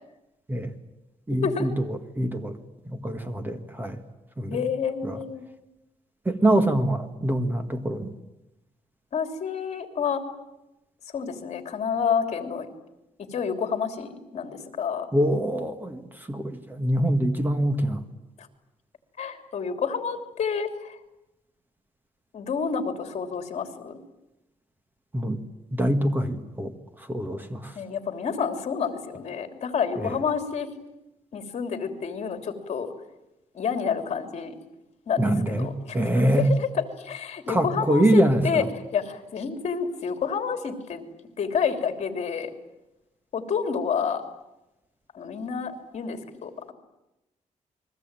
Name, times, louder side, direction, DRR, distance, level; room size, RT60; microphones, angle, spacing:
voice 1, 1.3-2.6 2.9-4.0 4.4-4.6 5.0-5.2 6.3-8.1 15.1-18.0 25.1-25.4 25.7-26.7 27.0-27.8 30.0-30.2 35.2-36.5 37.5-38.7, right 1 dB, 15° right, 7 dB, 1.7 m, -24 dB
voice 2, 4.5-5.4 9.1-10.2 11.1-12.7 13.2-15.1 18.4-18.5 19.2-21.0 22.3-24.0 27.7-30.7 31.3-32.9 33.5-34.6 35.1-36.1 36.5-36.7 37.0-38.6 38.9-41.0 41.4-42.5 43.3-44.2 45.1-46.7, left 6 dB, 55° left, 6 dB, 3.1 m, -29 dB
29.5 x 22.0 x 9.0 m, 0.96 s
wide cardioid pair, 170°, 13 cm